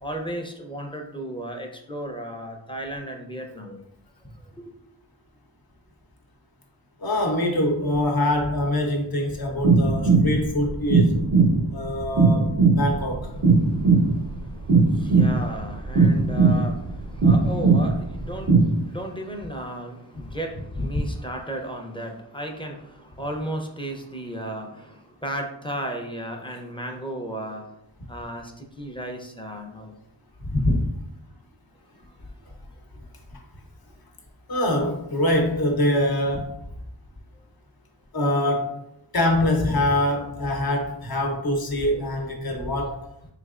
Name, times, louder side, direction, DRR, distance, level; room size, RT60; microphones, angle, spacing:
voice 1, 0.0-3.8 4.6-4.7 13.4-27.7 28.1-29.9, right 1 dB, 10° left, 2 dB, 0.6 m, -35 dB
voice 2, 7.0-11.2 11.7-12.5 12.8-13.3 20.8-20.9 30.4-30.9 34.5-36.5 38.1-38.7 39.1-43.0, left 1 dB, 50° left, 2 dB, 0.9 m, -24 dB
sound 1, 9.6-18.7, right 4 dB, 45° right, 0.5 m, -19 dB
3.7 x 3.2 x 2.4 m, 0.80 s
wide cardioid pair, 55°, 46 cm